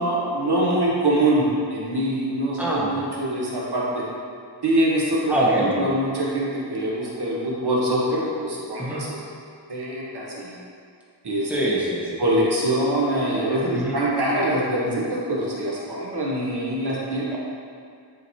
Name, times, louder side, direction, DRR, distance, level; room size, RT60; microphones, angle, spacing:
voice 1, 0.0-4.0 4.6-5.2 5.6-9.2 9.7-10.5 11.2-11.5 12.2-17.4, right 1 dB, 60° right, -5 dB, 1.4 m, -24 dB
voice 2, 2.6-2.9 5.3-5.9 8.8-9.0 11.5-12.2 13.7-14.0 17.3-17.4, right 1 dB, 5° right, -7 dB, 1.5 m, -24 dB
9.6 x 5.0 x 3.2 m, 2.3 s
wide cardioid pair, 90°, 45 cm